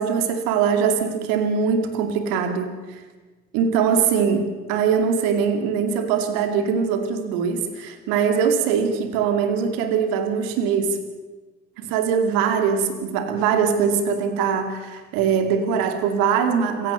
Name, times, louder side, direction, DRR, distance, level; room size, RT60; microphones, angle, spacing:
voice 1, 0.0-3.0 3.5-11.0 11.8-16.9, right 6 dB, 70° right, 8 dB, 2.5 m, -22 dB
27.0 x 16.0 x 6.9 m, 1.3 s
figure-of-eight pair, 45°, 35 cm